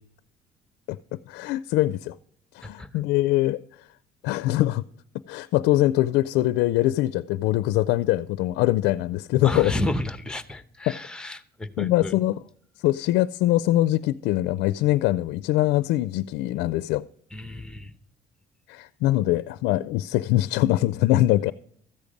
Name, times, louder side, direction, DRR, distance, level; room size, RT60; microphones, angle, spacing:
voice 1, 0.9-2.2 2.5-3.9 4.2-4.8 5.3-9.7 10.9-11.0 11.8-12.4 12.8-17.0 18.7-21.5, left 16 dB, 90° left, 0.4 m, -23 dB
voice 2, 9.4-12.2 17.3-17.9, left 1 dB, 5° left, 0.9 m, -31 dB
14.0 x 8.3 x 5.2 m
cardioid pair, 110°, 17 cm